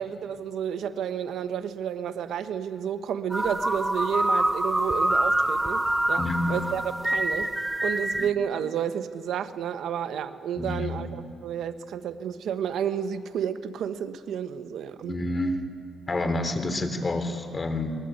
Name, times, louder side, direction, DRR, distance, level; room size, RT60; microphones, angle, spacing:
voice 1, 0.0-6.2 6.5-7.5 7.8-15.2, right 8 dB, 70° right, 10 dB, 1.2 m, -31 dB
sound 1, 3.3-8.3, right 1 dB, 10° right, 1.2 m, -26 dB
voice 2, 6.2-6.6 8.2-8.3 10.6-11.2 15.0-15.6 16.1-18.0, left 2 dB, 30° left, 7 dB, 3.6 m, -28 dB
25.5 x 21.5 x 9.2 m, 2.2 s
cardioid pair, 90°, 0 cm